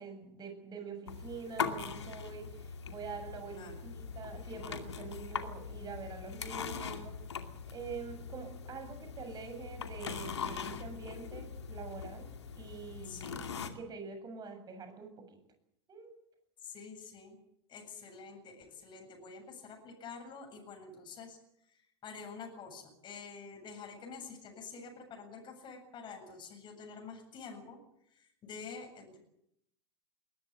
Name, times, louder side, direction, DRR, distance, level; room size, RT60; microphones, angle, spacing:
voice 1, 0.0-7.2 7.7-13.3 13.7-15.4 15.9-16.1, right 5 dB, 30° right, 7 dB, 7.3 m, -45 dB
sound 1, 1.1-13.7, left 6 dB, 80° left, 2.5 m, -41 dB
voice 2, 3.5-3.9 13.0-13.4 16.6-17.4 17.7-27.8 28.1-29.2, left 5 dB, 35° left, 3 dB, 7.9 m, -48 dB
21.5 x 20.0 x 8.8 m, 0.74 s
figure-of-eight pair, 90°, 14 cm